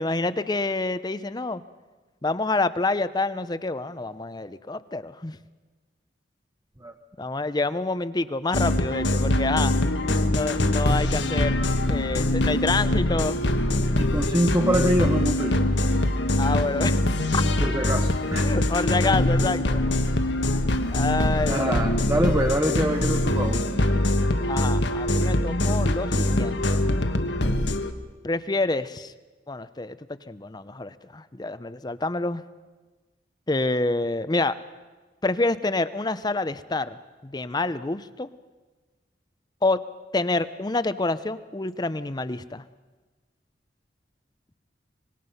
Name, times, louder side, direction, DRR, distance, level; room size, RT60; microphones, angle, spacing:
voice 1, 0.0-1.6 2.2-5.4 7.2-9.8 10.3-11.6 11.9-13.4 16.4-17.0 17.3-17.4 18.4-19.8 20.9-21.7 24.5-26.8 28.2-29.1 29.5-30.0 30.3-32.4 33.5-34.6 35.2-38.3 39.6-39.8 40.1-42.6, left 2 dB, 20° left, 14 dB, 0.6 m, -27 dB
sound 1, 8.5-27.9, left 1 dB, 75° left, 1.4 m, -23 dB
voice 2, 14.0-15.6 17.6-18.6 21.5-23.6, right 1 dB, 15° right, 4 dB, 1.1 m, -25 dB
25.0 x 20.5 x 5.6 m, 1.3 s
head